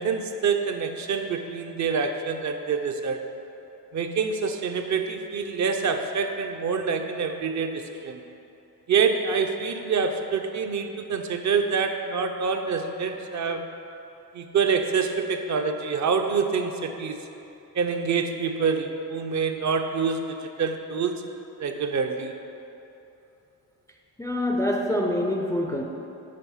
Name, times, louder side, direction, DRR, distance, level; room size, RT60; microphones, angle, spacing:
voice 1, 0.0-3.3 3.9-8.2 8.9-13.7 14.3-17.2 17.7-21.2 21.6-22.3, right 5 dB, 45° right, 6 dB, 0.5 m, -26 dB
voice 2, 24.2-25.8, left 1 dB, 10° left, 1 dB, 0.4 m, -25 dB
9.3 x 3.4 x 5.5 m, 2.9 s
cardioid pair, 115°, 40 cm